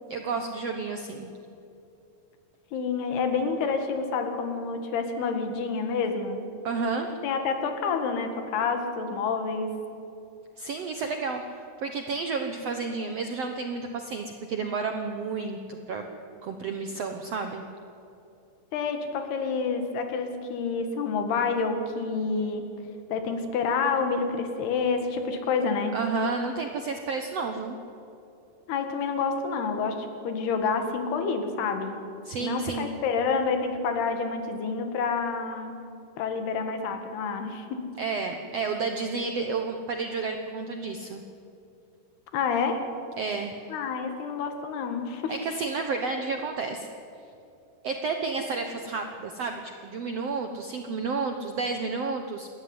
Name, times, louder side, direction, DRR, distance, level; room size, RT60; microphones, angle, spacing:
voice 1, 0.1-1.3 6.6-7.1 10.6-16.0 16.4-17.6 25.9-27.8 32.2-32.9 38.0-41.2 43.2-43.5 45.3-46.9 47.8-52.5, right 4 dB, 75° right, 5 dB, 1.4 m, -31 dB
voice 2, 2.7-6.4 7.2-9.7 18.7-22.6 23.1-26.0 28.7-32.0 32.4-35.7 36.2-37.9 42.3-42.8 43.7-45.4, left 5 dB, 90° left, 6 dB, 3.8 m, -28 dB
28.5 x 13.0 x 9.7 m, 2.7 s
omnidirectional pair, 4.5 m